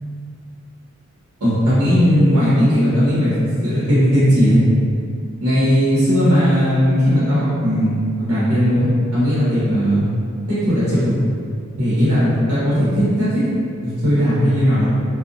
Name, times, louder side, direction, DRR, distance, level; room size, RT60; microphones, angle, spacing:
voice 1, 1.4-4.6 5.4-10.1 10.5-11.2 11.8-13.5 13.8-14.9, equal, 80° right, -11 dB, 0.7 m, -17 dB
2.6 x 2.1 x 2.5 m, 2.4 s
head